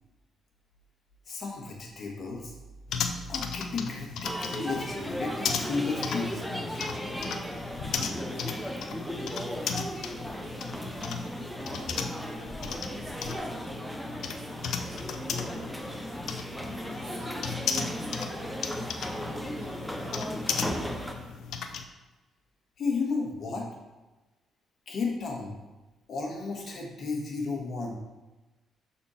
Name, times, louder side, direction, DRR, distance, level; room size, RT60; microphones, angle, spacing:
voice 1, 1.2-2.5 3.3-7.0 22.8-23.7 24.9-25.6 26.1-28.0, left 4 dB, 55° left, 0 dB, 1.5 m, -33 dB
sound 1, 2.9-21.8, left 6 dB, 75° left, 0.5 m, -36 dB
sound 2, 4.2-21.1, equal, ahead, 0.8 m, -36 dB
voice 2, 10.4-11.2 11.7-12.1 12.5-14.0 14.3-16.0 17.0-21.3, right 3 dB, 70° right, 1 dB, 1.3 m, -52 dB
6.3 x 4.3 x 4.2 m, 1.1 s
cardioid pair, 90°, 0 cm